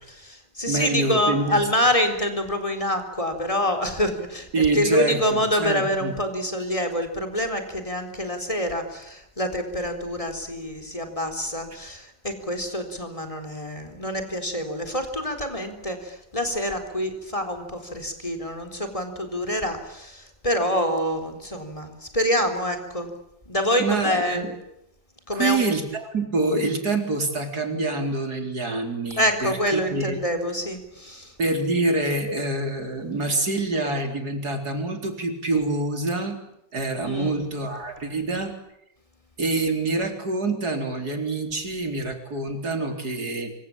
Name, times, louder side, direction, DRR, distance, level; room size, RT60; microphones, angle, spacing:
voice 1, 0.1-4.5 4.7-23.1 23.5-24.4 25.3-25.6 29.2-31.3 37.0-37.4, equal, 20° left, 6 dB, 4.1 m, -26 dB
voice 2, 0.7-1.6 4.5-6.1 23.8-24.5 25.3-30.2 31.4-36.4 36.7-38.5 39.4-43.5, right 2 dB, 60° right, 5 dB, 4.5 m, -26 dB
26.0 x 24.5 x 8.8 m, 0.80 s
omnidirectional pair, 1.8 m